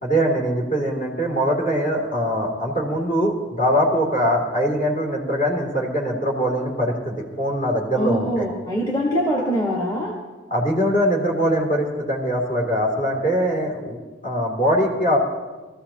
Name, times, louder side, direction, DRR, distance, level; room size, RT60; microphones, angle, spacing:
voice 1, 0.0-8.5 10.5-14.0 14.2-15.2, equal, 45° left, -1 dB, 2.8 m, -22 dB
voice 2, 7.9-10.1, equal, 25° left, -3 dB, 1.5 m, -23 dB
20.0 x 14.0 x 2.9 m, 1.3 s
head